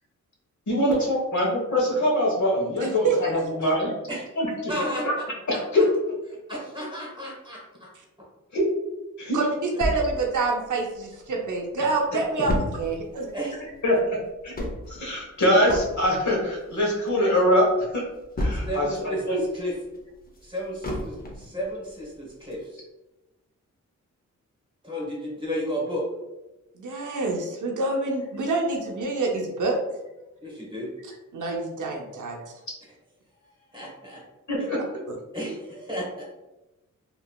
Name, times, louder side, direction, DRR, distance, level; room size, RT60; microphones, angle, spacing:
voice 1, 0.7-3.9 4.4-4.5 5.7-5.8 8.5-8.6 9.3-9.4 13.8-13.9 14.9-17.7 17.9-18.0 18.4-18.9 19.3-19.4 34.5-34.8, left 1 dB, 60° left, -2 dB, 1.0 m, -23 dB
voice 2, 2.8-3.2 9.3-13.4 26.7-29.8 31.3-32.4 35.1-35.2, right 3 dB, 70° right, 0 dB, 0.6 m, -27 dB
voice 3, 4.7-5.1 5.5-5.9 6.5-7.9 13.3-13.5 18.5-19.7 20.4-22.8 24.8-26.0 30.4-30.9 33.7-34.2 34.6-34.7 35.3-36.2, equal, 15° right, -3 dB, 1.1 m, -33 dB
Things falling on the floor, 9.8-11.3 11.7-11.8 12.0-19.0 19.4-21.6 22.0-22.1 22.5-22.6, left 1 dB, 30° left, 0.6 m, -32 dB
2.9 x 2.6 x 2.3 m, 1.0 s
cardioid pair, 55°, 32 cm